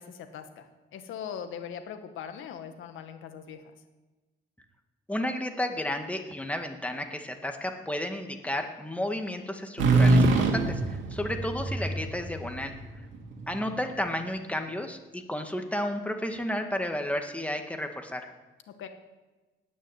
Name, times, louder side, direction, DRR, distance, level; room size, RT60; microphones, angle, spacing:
voice 1, 0.0-3.6 18.8-18.9, left 8 dB, 80° left, 7 dB, 1.9 m, -40 dB
voice 2, 5.1-12.7 13.5-18.3, left 1 dB, 5° left, 4 dB, 2.1 m, -32 dB
sound 1, 9.8-13.5, right 2 dB, 80° right, 2.6 m, -24 dB
18.0 x 6.4 x 9.4 m, 1.2 s
cardioid pair, 90°, 20 cm